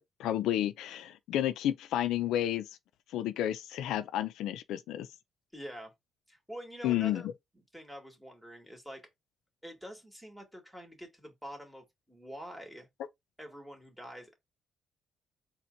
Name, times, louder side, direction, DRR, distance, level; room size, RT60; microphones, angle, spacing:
voice 1, 0.0-2.7 3.1-5.1 6.8-7.2, left 12 dB, 90° left, 0.4 m, -31 dB
voice 2, 5.5-5.9 6.3-7.3 7.7-9.0 9.6-12.9 13.4-14.3, equal, ahead, 2.4 m, -46 dB
4.3 x 2.9 x 3.9 m
cardioid pair, 90°, 0 cm